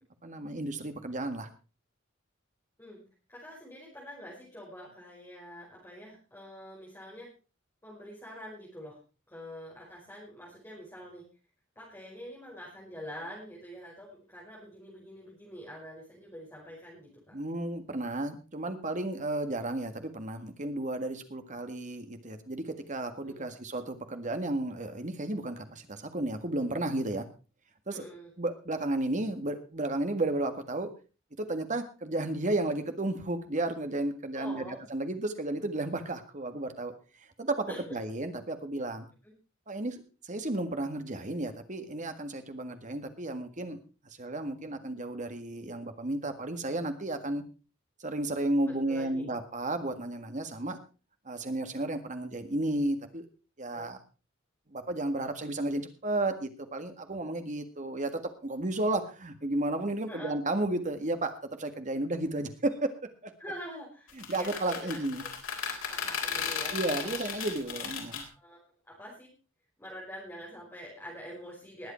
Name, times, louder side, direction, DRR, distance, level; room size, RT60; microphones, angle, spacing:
voice 1, 0.2-1.5 17.3-27.3 27.9-28.0 28.4-30.9 31.4-36.9 37.4-39.1 39.7-43.8 44.0-47.4 48.0-50.8 51.2-53.3 53.6-54.0 54.7-61.3 61.6-62.9 63.2-63.3 64.1-65.2 66.7-68.2, right 2 dB, 40° right, 8 dB, 1.7 m, -33 dB
voice 2, 3.3-7.3 7.8-9.0 9.3-11.2 11.7-17.3 23.2-23.5 27.9-28.3 34.3-34.8 37.7-37.8 48.7-49.3 53.7-53.9 60.1-60.3 63.4-65.0 65.9-67.1 68.3-68.6 68.9-69.3 69.8-71.9, equal, 10° left, -5 dB, 5.0 m, -45 dB
sound 1, 64.1-68.2, left 7 dB, 85° left, 3.7 m, -35 dB
20.5 x 8.1 x 4.4 m, 0.34 s
head